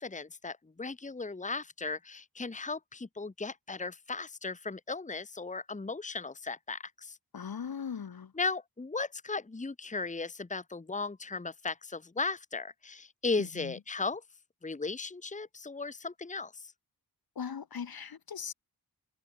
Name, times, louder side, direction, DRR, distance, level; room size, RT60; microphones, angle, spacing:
voice 1, 0.0-7.2 8.3-14.2 14.6-16.7, left 4 dB, 20° left, 1.2 m, -36 dB
voice 2, 7.3-8.3 13.4-13.7 17.4-18.5, left 7 dB, 65° left, 1.7 m, -39 dB
wide cardioid pair, 130°, 39 cm